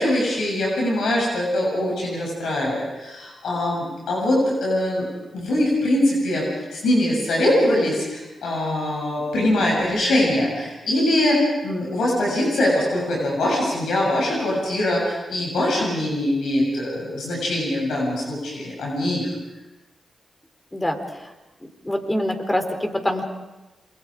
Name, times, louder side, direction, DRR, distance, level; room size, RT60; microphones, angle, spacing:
voice 1, 0.0-5.1 5.3-6.5 6.7-19.3, left 1 dB, 80° left, -3 dB, 7.3 m, -22 dB
voice 2, 20.7-21.3 21.8-23.2, left 1 dB, 15° left, 5 dB, 4.1 m, -25 dB
27.5 x 22.5 x 5.0 m, 1.1 s
supercardioid pair, 45°, 0 cm